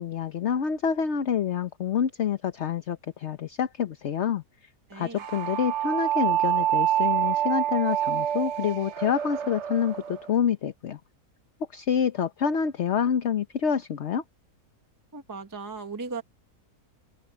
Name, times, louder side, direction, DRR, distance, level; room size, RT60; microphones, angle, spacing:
voice 1, 0.0-4.4 4.9-11.0 11.7-14.2, left 7 dB, 50° left, 1.1 m, -27 dB
voice 2, 4.9-5.2 15.1-16.2, right 4 dB, 15° right, 1.3 m, -37 dB
sound 1, 5.2-10.3, right 11 dB, 55° right, 1.0 m, -27 dB
open air
omnidirectional pair, 1.6 m